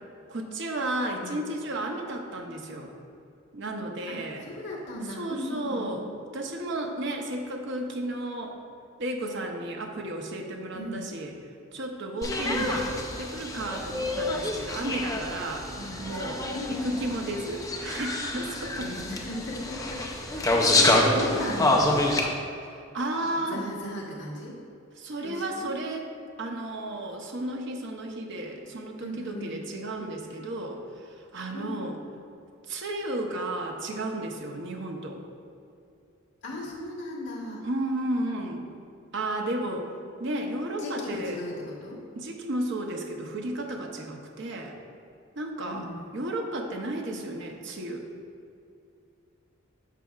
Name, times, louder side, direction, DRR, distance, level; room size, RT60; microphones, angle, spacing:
voice 1, 0.3-2.9 3.5-4.4 5.1-6.0 6.3-8.6 9.0-11.3 11.7-12.9 13.2-15.7 16.0-18.9 20.7-20.8 22.7-23.7 25.0-26.1 26.4-30.8 31.3-32.0 32.7-35.2 37.6-38.7 39.1-39.9 40.2-41.4 42.2-44.8 45.4-48.1, right 1 dB, 60° right, 2 dB, 0.7 m, -33 dB
voice 2, 4.1-6.0 10.7-11.0 12.3-12.7 15.7-16.0 16.5-17.0 18.8-20.0 20.3-22.2 23.3-24.6 25.2-25.7 29.0-29.6 31.5-31.8 36.4-37.6 40.8-42.0 45.6-46.1, left 1 dB, 60° left, -5 dB, 1.4 m, -36 dB
sound 1, 12.2-22.3, left 2 dB, 15° left, 0.5 m, -27 dB
11.5 x 4.7 x 2.4 m, 2.5 s
head